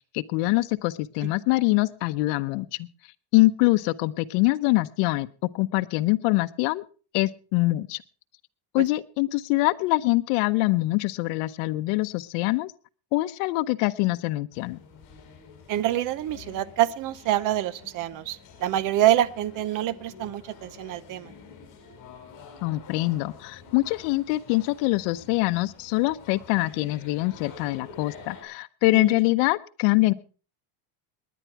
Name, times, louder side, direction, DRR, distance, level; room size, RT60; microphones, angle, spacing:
voice 1, 0.1-2.9 3.3-6.8 7.1-8.0 8.7-12.7 13.1-14.8 22.6-30.1, left 21 dB, 75° left, 11 dB, 1.0 m, -24 dB
sound 1, 14.5-28.4, left 5 dB, 40° left, 6.2 m, -48 dB
voice 2, 15.7-21.3 28.9-29.2, right 13 dB, 40° right, 19 dB, 0.7 m, -26 dB
19.5 x 10.5 x 4.7 m, 0.37 s
cardioid pair, 170°, 50 cm